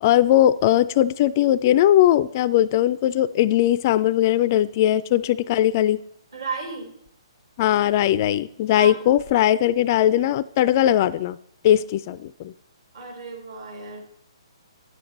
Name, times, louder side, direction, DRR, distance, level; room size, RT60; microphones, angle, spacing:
voice 1, 0.0-6.0 7.6-11.4 11.6-12.5, left 12 dB, 35° left, 18 dB, 0.3 m, -19 dB
voice 2, 6.3-6.9 8.7-9.1 12.9-14.0, right 5 dB, 60° right, 2 dB, 3.8 m, -33 dB
9.7 x 7.7 x 5.2 m, 0.67 s
figure-of-eight pair, 130°, 3 cm